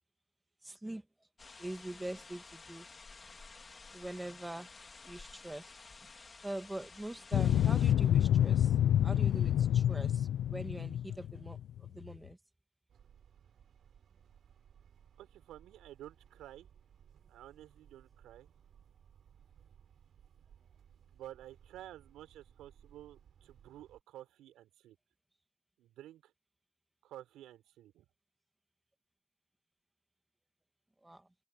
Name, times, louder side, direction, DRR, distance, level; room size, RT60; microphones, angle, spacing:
voice 1, 0.6-1.0 1.6-2.8 3.9-4.7 5.0-5.7 6.4-12.4 31.0-31.3, right 1 dB, 5° right, 1.6 m, -43 dB
sound 1, 1.4-7.9, left 4 dB, 20° left, 3.1 m, -53 dB
sound 2, 7.3-12.1, left 11 dB, 50° left, 0.6 m, -28 dB
sound 3, 12.9-24.0, right 8 dB, 35° right, 6.9 m, -62 dB
voice 2, 15.2-16.7 17.3-18.5 21.1-25.0 25.8-26.3 27.0-28.0, right 13 dB, 55° right, 4.3 m, -52 dB
cardioid pair, 155°, 0 cm